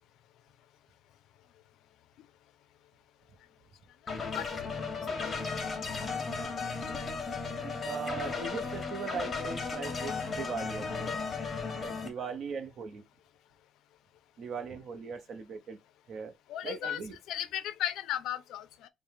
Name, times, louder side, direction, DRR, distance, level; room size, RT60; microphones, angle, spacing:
sound 1, 4.1-12.1, left 4 dB, 25° left, 0.8 m, -35 dB
voice 1, 5.5-5.9 16.5-17.0 17.3-18.9, left 12 dB, 85° left, 0.4 m, -35 dB
voice 2, 7.6-11.1 11.8-13.0 14.4-15.8 16.1-16.3 16.6-17.2, right 6 dB, 50° right, 0.8 m, -39 dB
5.1 x 2.1 x 3.4 m
cardioid pair, 180°, 0 cm